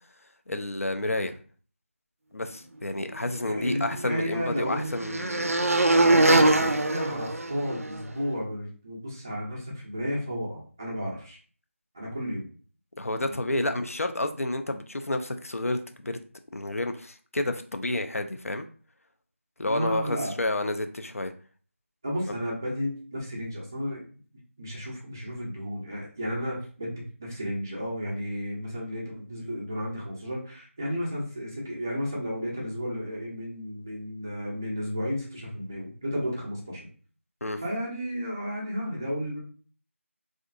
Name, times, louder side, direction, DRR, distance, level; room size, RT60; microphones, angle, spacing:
voice 1, 0.5-1.4 2.3-5.6 6.3-6.7 13.0-16.2 16.5-18.7 19.6-21.3 37.4-37.6, left 2 dB, 80° left, 7 dB, 0.4 m, -30 dB
voice 2, 3.4-4.9 6.1-6.7 6.9-11.4 11.9-12.5 13.0-13.3 13.6-13.7 19.6-20.3 22.0-24.0 24.6-36.9 37.6-39.4, equal, 15° right, -4 dB, 0.4 m, -33 dB
sound 1, 3.4-8.0, right 2 dB, 90° right, 0.4 m, -24 dB
2.6 x 2.4 x 2.3 m, 0.41 s
figure-of-eight pair, 165°, 8 cm